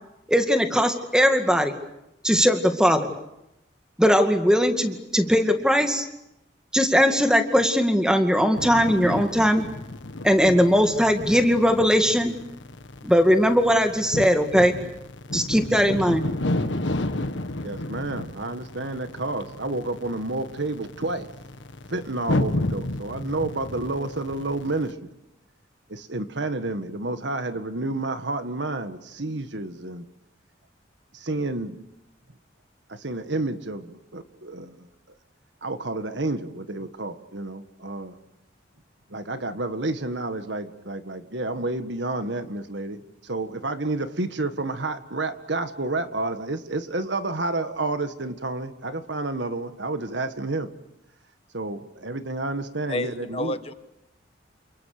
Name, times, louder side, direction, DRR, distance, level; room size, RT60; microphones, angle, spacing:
voice 1, 0.3-1.7 2.2-3.1 4.0-6.1 6.7-9.6 10.2-12.3 13.0-14.8 15.3-16.2, equal, 5° right, 6 dB, 2.2 m, -20 dB
sound 1, 8.6-24.9, left 1 dB, 75° left, 1.5 m, -32 dB
voice 2, 17.6-21.3 21.9-25.0 25.9-30.0 31.1-31.8 32.9-34.8 35.6-38.1 39.1-50.7 51.5-53.5, right 2 dB, 70° right, 9 dB, 1.8 m, -30 dB
voice 3, 52.9-53.7, left 1 dB, 30° left, 10 dB, 1.2 m, -30 dB
28.5 x 27.5 x 6.8 m, 0.87 s
head